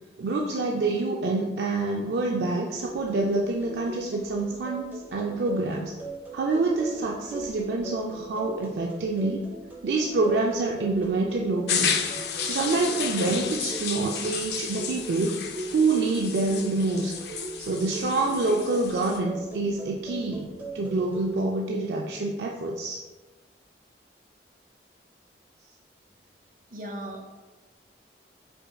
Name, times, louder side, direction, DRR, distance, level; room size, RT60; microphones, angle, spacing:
voice 1, 0.2-5.9 6.3-9.5 9.8-12.0 12.4-15.4 15.7-17.1 17.6-23.0, right 3 dB, 70° right, -1 dB, 0.4 m, -27 dB
sound 1, 2.8-21.4, right 3 dB, 10° right, 0.7 m, -40 dB
sound 2, 11.7-19.2, left 7 dB, 60° left, 0.4 m, -32 dB
voice 2, 26.7-27.2, right 1 dB, 50° right, 1 dB, 0.7 m, -36 dB
5.2 x 4.3 x 2.2 m, 1.2 s
head